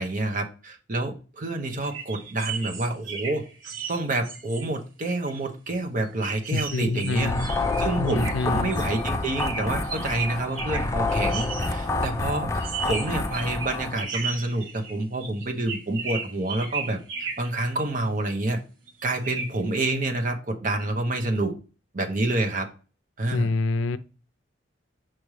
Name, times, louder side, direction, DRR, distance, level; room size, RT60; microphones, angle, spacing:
voice 1, 0.0-3.4 3.9-7.4 7.8-17.0 17.4-18.6 19.0-21.5 21.9-22.7 23.2-23.6, right 2 dB, 45° right, 0.9 m, -28 dB
sound 1, 1.7-4.7 5.3-5.5 5.7-5.8 6.2-9.0 9.4-11.7 12.6-17.9 18.9-19.5, right 5 dB, 80° right, 1.3 m, -35 dB
voice 2, 6.5-7.5 8.0-8.7 23.3-24.0, left 3 dB, 75° left, 0.4 m, -26 dB
sound 2, 7.2-14.0, left 2 dB, 15° left, 0.4 m, -28 dB
6.1 x 5.1 x 3.2 m
head